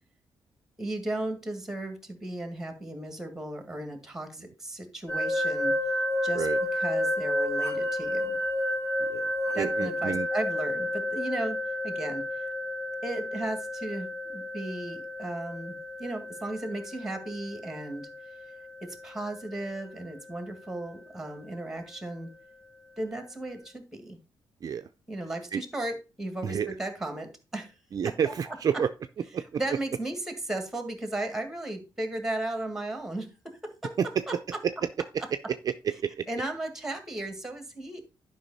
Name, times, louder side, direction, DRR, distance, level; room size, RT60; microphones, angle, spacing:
voice 1, 0.8-5.8 6.2-6.5 6.7-8.4 9.5-12.5 13.0-18.1 18.8-22.3 23.0-24.2 25.1-27.8 28.0-28.6 29.6-34.0 34.3-34.4 36.3-38.0, right 1 dB, 5° right, 7 dB, 1.9 m, -35 dB
sound 1, 5.1-19.9, left 1 dB, 30° left, 2.8 m, -31 dB
voice 2, 9.1-10.3 24.6-24.9 25.5-25.6 26.4-26.8 27.9-28.9 29.3-29.6 34.0-34.2 34.6-34.7 35.6-36.3, right 7 dB, 45° right, 9 dB, 0.4 m, -29 dB
11.0 x 5.4 x 4.1 m, 0.30 s
wide cardioid pair, 140°, 9 cm